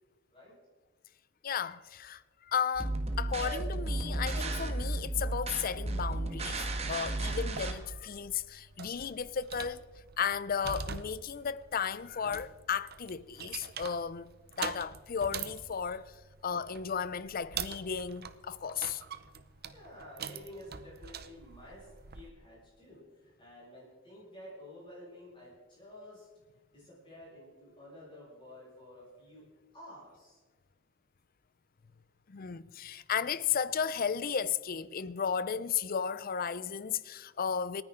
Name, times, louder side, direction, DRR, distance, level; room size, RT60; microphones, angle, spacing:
voice 1, 1.4-9.8 10.2-14.3 14.6-16.2 16.4-19.0 32.3-37.8, left 7 dB, 45° left, 0.5 m, -34 dB
sound 1, 2.7-7.7, right 2 dB, 30° right, 1.4 m, -33 dB
sound 2, 7.3-22.3, right 7 dB, 50° right, 0.8 m, -45 dB
voice 2, 19.7-26.3 26.7-30.4 31.9-32.0, left 1 dB, 25° left, 6.2 m, -51 dB
28.5 x 9.8 x 3.8 m
head